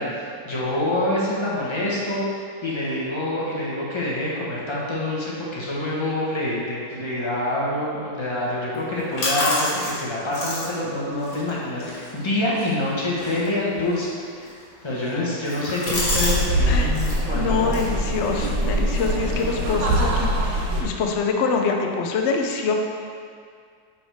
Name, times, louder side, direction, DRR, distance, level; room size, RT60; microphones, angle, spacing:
voice 1, 0.0-14.5 14.8-17.8, left 1 dB, 15° left, -6 dB, 1.1 m, -26 dB
sound 1, 8.7-16.5 16.7-17.2 17.6-20.0, left 2 dB, 50° left, 1.9 m, -32 dB
sound 2, 15.8-20.8, right 1 dB, 70° right, 1.6 m, -23 dB
voice 2, 17.3-22.7, left 5 dB, 75° left, 2 dB, 0.6 m, -25 dB
8.9 x 4.5 x 3.5 m, 2.2 s
omnidirectional pair, 2.1 m